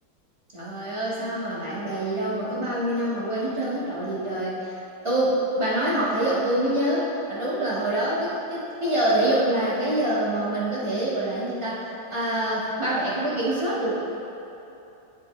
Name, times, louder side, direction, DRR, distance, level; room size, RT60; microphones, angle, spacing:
voice 1, 0.5-4.7 5.0-13.9, right 1 dB, 15° right, -8 dB, 1.6 m, -25 dB
10.5 x 7.4 x 3.3 m, 2.9 s
omnidirectional pair, 2.2 m